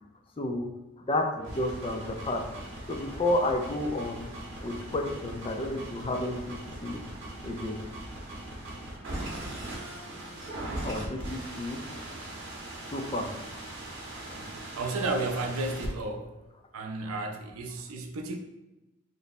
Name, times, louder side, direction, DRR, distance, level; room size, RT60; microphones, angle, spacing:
voice 1, 0.4-0.7 1.0-4.3 4.6-6.6 6.8-7.0 7.4-7.8 10.8-11.8 12.9-13.3 14.3-14.4 17.0-17.1, left 1 dB, 25° left, 3 dB, 0.3 m, -31 dB
sound 1, 1.4-15.9, right 1 dB, 55° right, 0.8 m, -40 dB
voice 2, 14.7-16.3 16.7-18.4, right 2 dB, 75° right, 3 dB, 0.5 m, -32 dB
3.2 x 2.0 x 4.0 m, 1.0 s
head